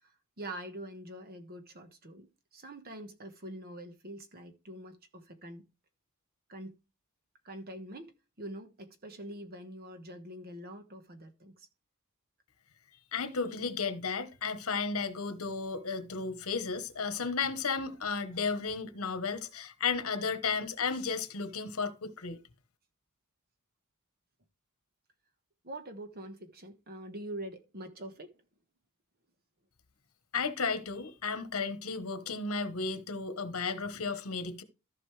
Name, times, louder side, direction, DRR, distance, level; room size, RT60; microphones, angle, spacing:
voice 1, 0.0-5.7 6.5-6.8 7.4-8.1 8.4-11.7 25.6-28.4 33.9-34.1, right 1 dB, 45° right, 1.3 m, -45 dB
voice 2, 13.1-22.4 30.3-34.6, left 5 dB, 75° left, 1.2 m, -34 dB
14.5 x 5.4 x 3.3 m
head